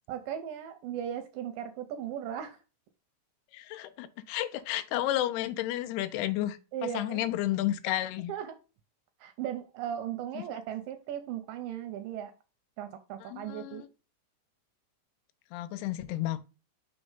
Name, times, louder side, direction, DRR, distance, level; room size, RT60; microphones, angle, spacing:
voice 1, 0.1-2.6 6.7-7.3 8.3-8.5 9.2-12.3 12.8-13.8, right 10 dB, 80° right, 2.0 m, -37 dB
voice 2, 3.5-8.3 10.4-10.5 13.3-13.9 15.5-16.4, left 14 dB, 85° left, 2.6 m, -32 dB
6.1 x 3.4 x 5.4 m
omnidirectional pair, 4.5 m